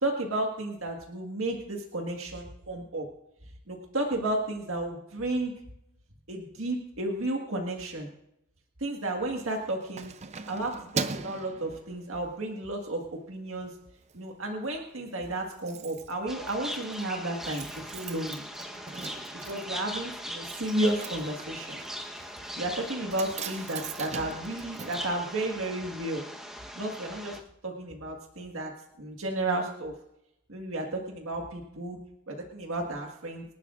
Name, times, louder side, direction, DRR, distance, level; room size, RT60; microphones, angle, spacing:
voice 1, 0.0-3.1 3.7-5.5 6.3-8.1 8.8-10.1 10.5-13.8 14.1-18.4 19.4-21.8 22.5-26.3 26.7-27.4 27.6-28.7 29.0-29.9 30.5-32.0 32.3-33.4, right 1 dB, 65° right, 1 dB, 1.7 m, -32 dB
Keys jangling, 9.4-12.4 12.9-13.1 13.5-14.2 14.4-14.5 14.8-14.9 15.1-25.9 26.2-26.3, right 5 dB, 30° right, 0.5 m, -41 dB
sound 1, 16.3-27.4, equal, ahead, 1.1 m, -40 dB
25.5 x 11.5 x 2.5 m, 0.82 s
head